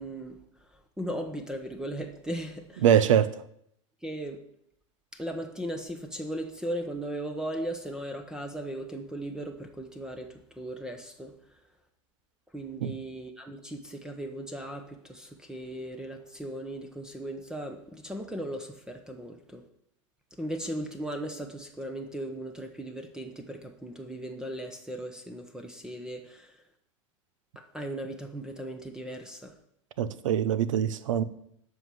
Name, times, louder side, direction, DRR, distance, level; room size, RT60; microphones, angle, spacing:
voice 1, 0.0-2.8 4.0-4.4 5.1-11.3 12.5-19.6 20.3-26.6 27.5-29.5, right 1 dB, 5° right, 5 dB, 1.1 m, -37 dB
voice 2, 2.8-3.3 12.8-12.9 30.0-31.2, right 9 dB, 90° right, 15 dB, 0.8 m, -23 dB
7.9 x 5.7 x 7.8 m, 0.72 s
supercardioid pair, 120°, 16 cm